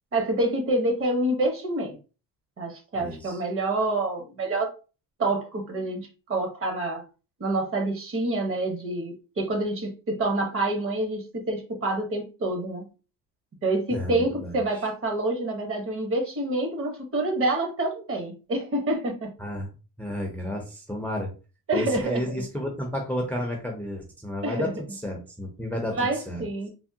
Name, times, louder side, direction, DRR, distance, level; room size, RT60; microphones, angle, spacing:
voice 1, 0.1-2.0 2.6-4.7 5.2-7.0 7.4-12.8 13.6-19.3 21.7-22.2 24.4-24.8 25.9-26.7, right 2 dB, 40° right, 0.9 m, -27 dB
voice 2, 3.0-3.4 13.9-14.6 19.4-19.7 20.0-21.3 21.7-26.4, left 1 dB, 5° left, 0.5 m, -32 dB
3.5 x 2.1 x 2.7 m
cardioid pair, 120°, 36 cm